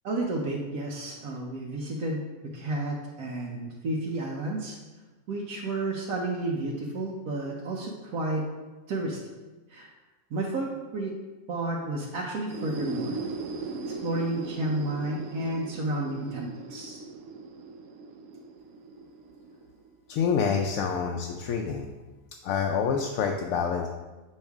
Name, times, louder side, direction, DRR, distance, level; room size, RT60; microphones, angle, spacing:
voice 1, 0.0-2.2 2.5-4.8 5.3-8.5 8.9-9.2 9.7-9.9 10.3-11.1 11.5-13.2 14.0-17.0, right 2 dB, 90° right, -3 dB, 1.2 m, -31 dB
sound 1, 12.4-20.0, right 3 dB, 70° right, 0.9 m, -38 dB
voice 2, 20.1-21.9 22.4-23.9, left 6 dB, 75° left, 2 dB, 1.0 m, -27 dB
6.5 x 5.5 x 3.5 m, 1.2 s
omnidirectional pair, 1.5 m